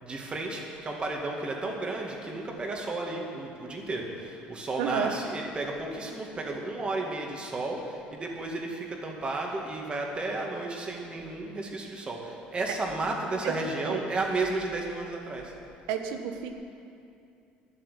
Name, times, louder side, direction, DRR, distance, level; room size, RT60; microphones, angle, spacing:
voice 1, 0.0-15.5, right 2 dB, 30° right, 0 dB, 2.2 m, -33 dB
voice 2, 4.8-5.2 13.4-13.5 13.9-14.0 15.9-16.5, right 8 dB, 85° right, 6 dB, 1.1 m, -30 dB
11.5 x 7.9 x 8.4 m, 2.5 s
supercardioid pair, 100°, 4 cm